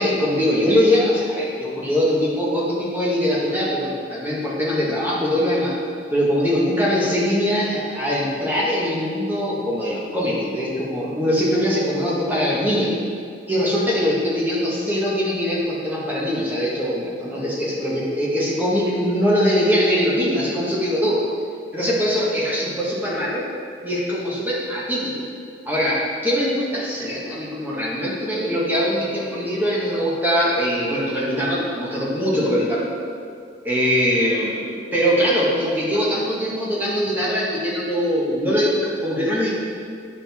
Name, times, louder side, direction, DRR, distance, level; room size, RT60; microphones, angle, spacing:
voice 1, 0.0-5.7 6.1-12.9 13.5-21.2 21.7-23.4 23.8-25.2 25.7-32.9 33.6-34.6 34.9-39.5, equal, 10° right, -7 dB, 1.8 m, -22 dB
9.6 x 6.1 x 4.5 m, 2.4 s
head